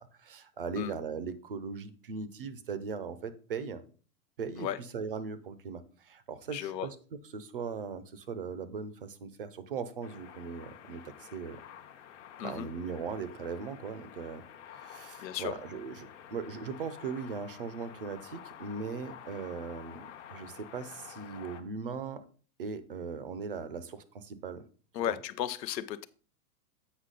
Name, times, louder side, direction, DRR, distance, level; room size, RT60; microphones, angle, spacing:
voice 1, 0.0-3.8 4.4-7.0 7.3-11.6 12.4-22.2 22.6-24.6 25.0-25.2, right 5 dB, 35° right, 0.4 m, -39 dB
voice 2, 6.5-6.9 12.4-12.7 15.2-15.6 24.9-26.1, left 11 dB, 85° left, 0.8 m, -34 dB
sound 1, 10.0-21.6, left 9 dB, 45° left, 0.9 m, -50 dB
8.2 x 5.7 x 3.8 m
supercardioid pair, 170°, 49 cm